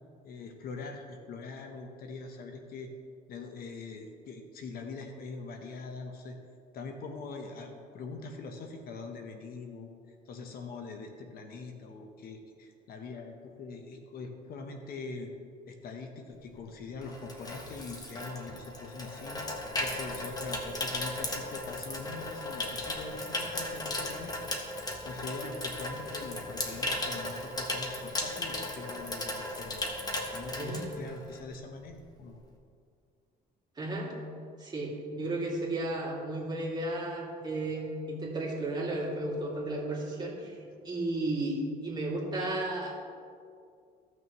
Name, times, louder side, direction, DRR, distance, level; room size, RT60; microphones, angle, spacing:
voice 1, 0.2-2.9 3.3-6.4 6.7-15.3 15.7-24.5 25.0-32.4, left 4 dB, 60° left, 4 dB, 1.0 m, -43 dB
Water tap faucet / Sink (filling or washing), 16.5-31.5 31.8-32.1, left 1 dB, 20° left, 1.4 m, -36 dB
voice 2, 33.8-34.1 34.6-40.6 40.8-43.0, right 2 dB, 25° right, -4 dB, 2.5 m, -33 dB
15.5 x 6.2 x 3.1 m, 2.3 s
cardioid pair, 110°, 17 cm